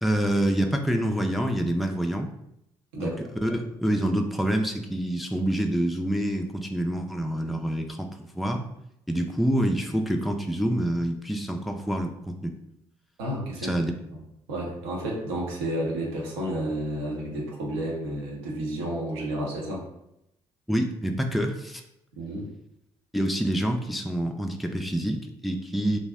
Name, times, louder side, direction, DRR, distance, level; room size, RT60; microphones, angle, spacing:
voice 1, 0.0-2.3 3.0-3.1 3.4-8.6 9.1-12.5 13.6-13.9 20.7-21.8 23.1-26.0, right 1 dB, ahead, 3 dB, 0.4 m, -27 dB
voice 2, 13.2-13.8 14.5-19.8 22.2-22.5, right 1 dB, 80° right, -2 dB, 0.7 m, -31 dB
2.5 x 2.0 x 3.5 m, 0.82 s
hypercardioid pair, 45°, 13 cm